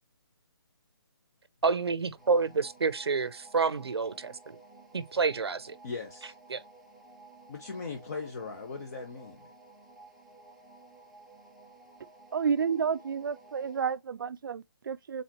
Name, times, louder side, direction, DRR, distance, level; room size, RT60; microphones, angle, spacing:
voice 1, 1.6-4.6 4.9-5.8 6.5-6.6, right 4 dB, 90° right, 0.7 m, -28 dB
sound 1, 2.2-14.0, right 3 dB, ahead, 0.4 m, -55 dB
voice 2, 5.8-6.3 7.5-9.5, left 4 dB, 40° left, 1.0 m, -39 dB
voice 3, 12.3-15.2, right 6 dB, 55° right, 0.4 m, -30 dB
4.1 x 3.9 x 2.9 m
hypercardioid pair, 160°, 13 cm